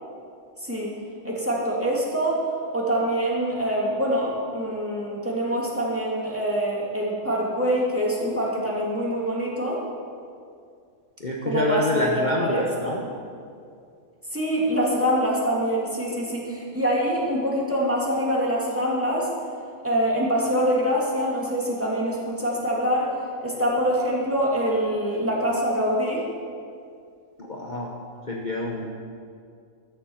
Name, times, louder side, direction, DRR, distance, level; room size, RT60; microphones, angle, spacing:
voice 1, 1.2-2.5 2.7-9.8 11.4-13.0 14.3-19.3 19.8-23.1 23.4-26.3, equal, 10° right, -5 dB, 2.6 m, -25 dB
voice 2, 11.2-13.0 27.4-27.9 28.3-28.9, left 2 dB, 40° left, -2 dB, 1.1 m, -27 dB
13.0 x 7.9 x 7.3 m, 2.3 s
omnidirectional pair, 1.3 m